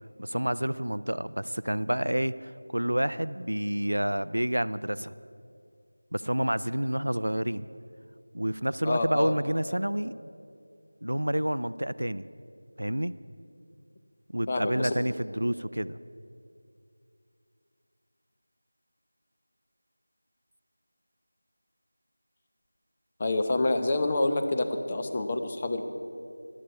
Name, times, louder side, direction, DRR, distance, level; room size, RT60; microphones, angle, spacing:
voice 1, 0.2-5.1 6.1-7.6 8.3-10.1 11.0-12.3 12.8-13.1 14.3-16.0, equal, 80° right, 16 dB, 0.4 m, -29 dB
voice 2, 8.8-9.4 14.5-14.9 23.2-25.8, left 2 dB, 25° left, 6 dB, 0.8 m, -27 dB
15.0 x 12.0 x 4.8 m, 2.4 s
figure-of-eight pair, 170°, 0 cm